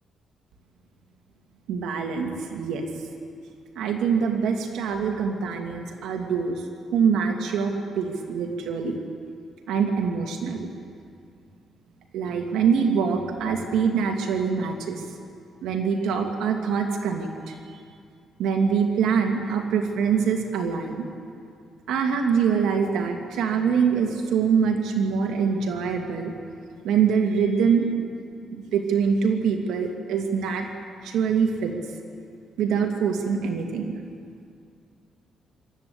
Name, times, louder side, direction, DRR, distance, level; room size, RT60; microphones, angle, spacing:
voice 1, 1.7-2.9 3.8-6.7 6.9-9.0 9.7-10.7 12.1-15.1 15.6-17.8 18.4-21.0 21.9-26.3 26.8-28.0 28.5-30.7 31.0-31.7 32.6-33.9, right 6 dB, 85° right, 3 dB, 2.1 m, -24 dB
25.5 x 13.0 x 8.5 m, 2.3 s
cardioid pair, 90°, 0 cm